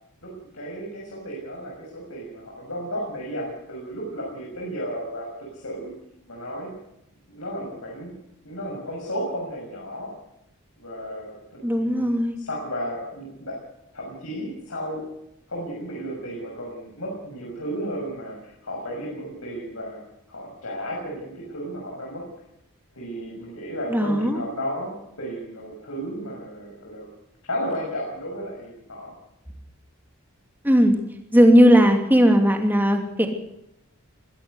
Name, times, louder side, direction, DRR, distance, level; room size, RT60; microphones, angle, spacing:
voice 1, 0.2-5.9 6.3-6.7 7.3-8.1 8.4-10.1 10.8-13.5 13.9-15.0 15.5-20.0 20.3-22.2 22.9-27.1 27.4-29.1, equal, 70° left, -3 dB, 6.7 m, -33 dB
voice 2, 11.6-12.4 23.9-24.4 30.6-31.0 31.3-33.3, equal, 10° right, 4 dB, 2.9 m, -17 dB
21.5 x 15.5 x 8.1 m, 0.81 s
head